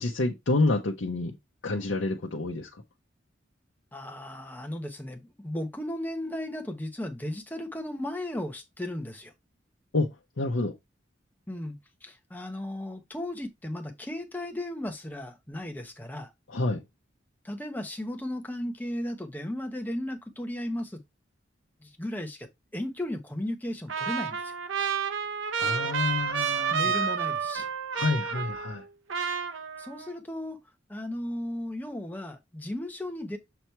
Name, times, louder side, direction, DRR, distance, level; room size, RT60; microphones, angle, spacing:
voice 1, 0.0-1.4 1.6-2.7 9.9-10.7 16.5-16.8 25.6-27.0 27.9-28.8, left 2 dB, 75° left, 0.8 m, -28 dB
voice 2, 3.9-9.3 11.5-16.3 17.4-21.0 21.8-24.6 26.7-27.7 29.8-30.6 30.9-33.4, left 1 dB, 10° left, 0.9 m, -35 dB
Trumpet, 23.9-28.8 29.1-30.1, right 6 dB, 85° right, 0.8 m, -30 dB
7.0 x 3.1 x 4.4 m
head